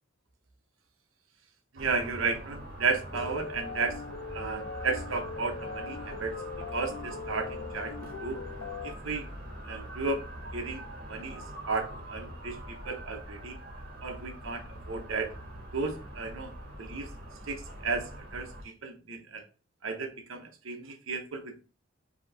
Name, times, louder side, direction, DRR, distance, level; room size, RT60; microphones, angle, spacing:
voice 1, 1.7-4.0 4.3-6.3 6.7-7.9 8.2-8.4 8.8-9.3 9.6-10.2 10.5-13.6 14.0-15.3 15.7-16.5 16.8-17.1 17.5-19.4 19.8-21.6, right 4 dB, 75° right, 5 dB, 0.8 m, -34 dB
sound 1, 1.8-18.6, right 1 dB, 50° right, 1.6 m, -43 dB
sound 2, 3.1-8.9, left 5 dB, 60° left, 0.4 m, -40 dB
5.2 x 2.9 x 3.4 m, 0.35 s
head